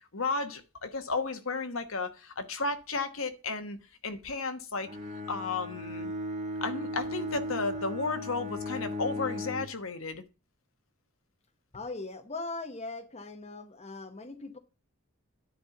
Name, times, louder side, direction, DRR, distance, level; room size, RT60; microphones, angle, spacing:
voice 1, 0.1-3.8 4.0-4.9 5.3-6.1 6.6-10.2, left 3 dB, 65° left, 1.2 m, -33 dB
Bowed string instrument, 4.9-9.8, left 1 dB, 30° right, 1.6 m, -36 dB
voice 2, 11.7-14.6, left 3 dB, 30° left, 0.9 m, -40 dB
10.0 x 4.3 x 7.0 m
head